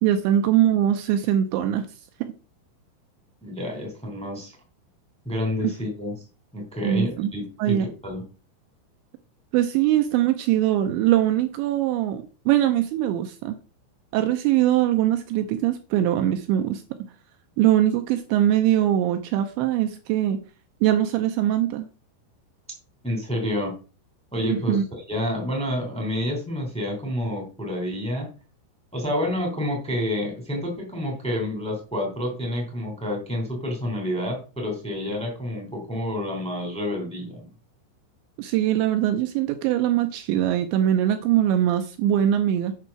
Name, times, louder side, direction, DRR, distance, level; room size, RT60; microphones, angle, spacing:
voice 1, 0.0-1.9 5.6-5.7 6.8-7.3 7.6-7.9 9.5-13.5 14.1-17.1 17.6-20.4 20.8-21.9 24.5-24.9 38.4-42.7, right 11 dB, 85° right, 7 dB, 2.7 m, -22 dB
voice 2, 3.4-4.5 5.2-6.2 6.5-7.8 8.0-8.2 23.0-23.7 24.3-28.3 28.9-37.5, left 1 dB, 5° left, 1 dB, 0.6 m, -29 dB
8.4 x 4.7 x 5.9 m, 0.36 s
omnidirectional pair, 5.7 m